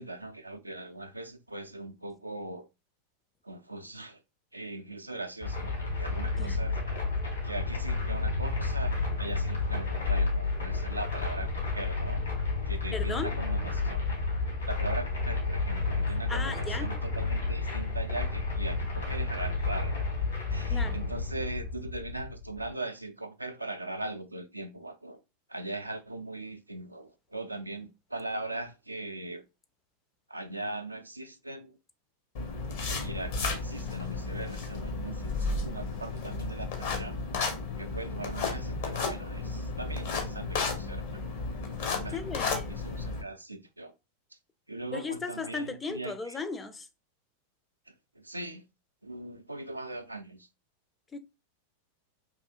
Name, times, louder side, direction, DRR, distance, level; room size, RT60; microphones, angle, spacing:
voice 1, 0.0-2.7 3.4-4.2 4.5-6.8 7.4-12.2 12.7-14.0 14.7-19.9 20.5-25.2 25.5-29.4 30.3-31.8 33.0-37.2 37.8-41.3 42.0-43.9 44.3-44.4 44.7-46.4 47.9-48.6 49.0-50.5, right 2 dB, 85° right, 0.3 m, -40 dB
sound 1, 5.4-22.7, left 3 dB, 75° left, 1.9 m, -31 dB
voice 2, 12.9-13.4 16.3-17.0 20.7-21.0 42.1-42.8 44.9-46.9 51.1-51.2, left 4 dB, 15° left, 0.4 m, -36 dB
sound 2, 32.3-43.2, left 4 dB, 55° left, 0.7 m, -33 dB
3.1 x 2.7 x 2.3 m
figure-of-eight pair, 90°, 0 cm